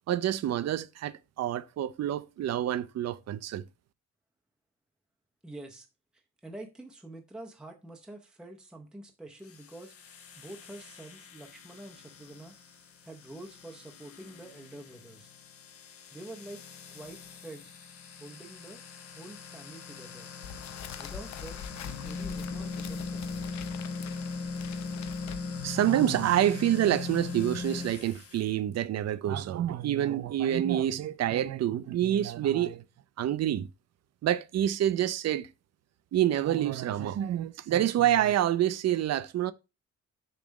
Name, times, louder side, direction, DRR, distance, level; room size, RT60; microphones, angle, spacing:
voice 1, 0.1-3.6 25.6-32.8 33.2-33.7 34.2-35.5 36.1-39.5, right 11 dB, 60° right, 0.6 m, -27 dB
voice 2, 5.4-5.9 6.1-9.9 10.4-12.6 13.0-15.3 16.1-16.6 16.9-17.7 18.2-18.8 19.1-20.3 21.0-23.6, right 1 dB, 5° right, 0.7 m, -47 dB
sound 1, 9.4-28.5, left 4 dB, 50° left, 1.1 m, -40 dB
sound 2, 20.4-25.7, left 7 dB, 70° left, 0.7 m, -44 dB
7.0 x 3.3 x 6.2 m
wide cardioid pair, 175°, 29 cm